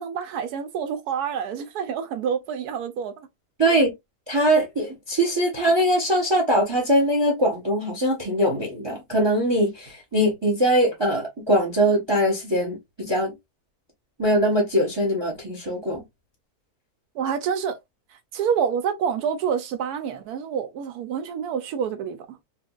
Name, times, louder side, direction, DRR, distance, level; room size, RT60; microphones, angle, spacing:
voice 1, 0.0-3.1 3.6-3.8 17.2-17.8 18.3-22.4, right 7 dB, 80° right, 1.1 m, -27 dB
voice 2, 3.6-3.9 4.3-13.3 14.2-16.0, equal, 20° right, 0.8 m, -22 dB
4.3 x 2.5 x 2.3 m
omnidirectional pair, 1.6 m